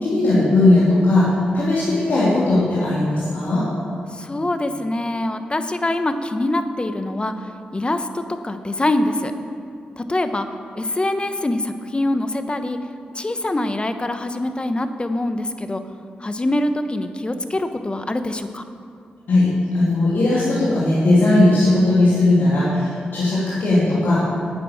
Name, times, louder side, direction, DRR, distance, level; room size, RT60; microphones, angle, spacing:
voice 1, 0.0-3.7 19.3-24.4, left 2 dB, 70° left, -8 dB, 2.7 m, -17 dB
voice 2, 4.1-9.3 10.0-10.5 10.8-12.8 13.1-15.8 16.2-18.6, left 1 dB, 30° left, 8 dB, 1.1 m, -24 dB
9.4 x 9.0 x 7.2 m, 2.4 s
supercardioid pair, 45°, 4 cm